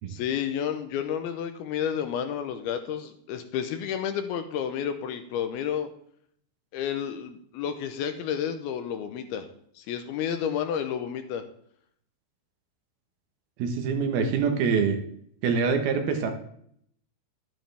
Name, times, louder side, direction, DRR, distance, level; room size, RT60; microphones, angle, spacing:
voice 1, 0.1-5.9 6.7-9.5 9.8-11.4, left 8 dB, 75° left, 8 dB, 2.5 m, -31 dB
voice 2, 13.6-15.0 15.4-16.3, right 5 dB, 70° right, 5 dB, 2.9 m, -25 dB
11.5 x 10.0 x 3.4 m, 0.66 s
omnidirectional pair, 4.9 m